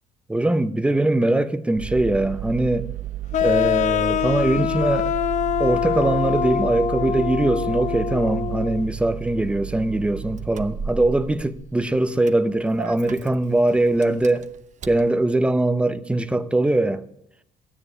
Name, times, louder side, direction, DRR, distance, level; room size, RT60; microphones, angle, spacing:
voice 1, 0.3-2.9 3.4-5.1 5.6-14.5 14.9-17.0, right 2 dB, 5° right, 0.8 m, -21 dB
Engine starting, 1.8-15.1, right 11 dB, 45° right, 0.9 m, -33 dB
sound 1, 3.3-8.8, left 11 dB, 45° left, 0.4 m, -24 dB
13.0 x 9.9 x 8.6 m
cardioid pair, 110°, 17 cm